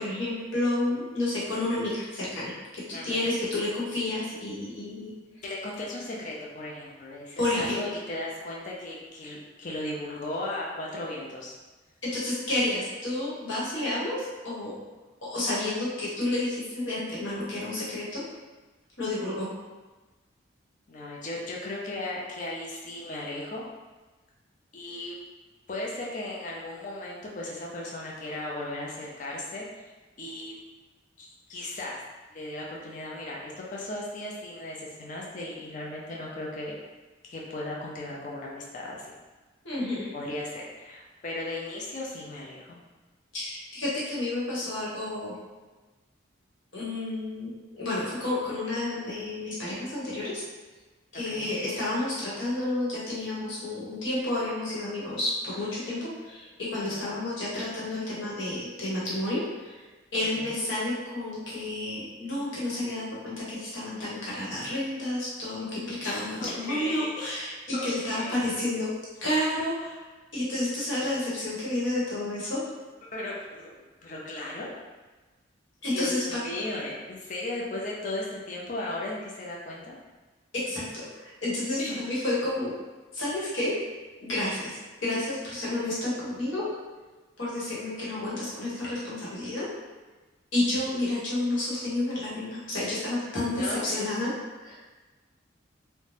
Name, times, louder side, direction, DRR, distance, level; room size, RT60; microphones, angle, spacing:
voice 1, 0.0-5.1 7.4-7.8 12.1-14.7 15.3-18.2 19.0-19.5 39.6-40.1 43.3-45.4 46.7-50.4 51.1-59.8 60.1-67.5 67.8-68.9 69.2-72.6 75.8-76.4 80.7-82.7 83.1-83.7 84.2-86.7 87.4-89.7 90.5-94.3 94.6-94.8, left 1 dB, 75° left, -8 dB, 1.1 m, -30 dB
voice 2, 2.9-3.3 5.4-11.5 20.9-23.6 24.7-25.2 25.7-29.9 30.2-30.5 31.2-32.0 32.3-36.8 37.2-39.1 40.1-42.8 51.3-51.5 56.8-57.1 60.4-60.6 66.0-67.1 67.7-68.6 73.1-73.7 74.0-74.7 75.8-80.0 81.7-82.0 93.6-93.9, left 2 dB, 40° left, -4 dB, 0.4 m, -36 dB
2.6 x 2.1 x 3.2 m, 1.2 s
head